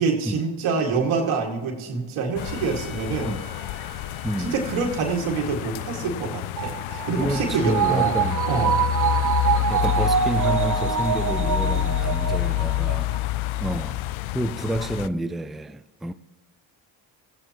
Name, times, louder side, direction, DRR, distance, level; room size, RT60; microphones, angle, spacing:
voice 1, 0.0-3.3 4.4-8.1 8.5-8.7, right 4 dB, 80° right, 2.1 m, -26 dB
sound 1, 2.4-15.1, left 16 dB, 80° left, 0.5 m, -28 dB
Trumpet, 2.4-7.6, right 1 dB, 20° left, 4.5 m, -48 dB
voice 2, 4.2-4.6 7.2-8.8 9.7-14.0 14.3-16.1, right 1 dB, ahead, 0.4 m, -29 dB
sound 2, 6.6-13.2 13.6-13.7, right 8 dB, 40° right, 0.8 m, -25 dB
17.5 x 15.0 x 3.0 m
supercardioid pair, 75°, 48 cm